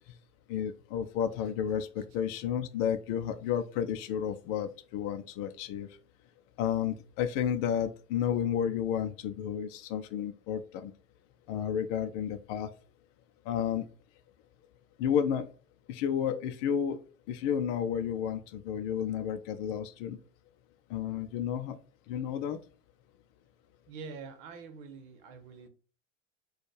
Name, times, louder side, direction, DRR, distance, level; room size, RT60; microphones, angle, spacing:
voice 1, 0.5-5.9 6.6-10.9 11.5-12.7 13.5-13.9 15.0-15.5 15.9-17.0 17.3-20.2 20.9-21.8 22.1-22.6, left 9 dB, 45° left, 0.5 m, -31 dB
voice 2, 23.9-25.7, right 5 dB, 50° right, 1.0 m, -45 dB
4.2 x 2.4 x 4.7 m
figure-of-eight pair, 80°, 38 cm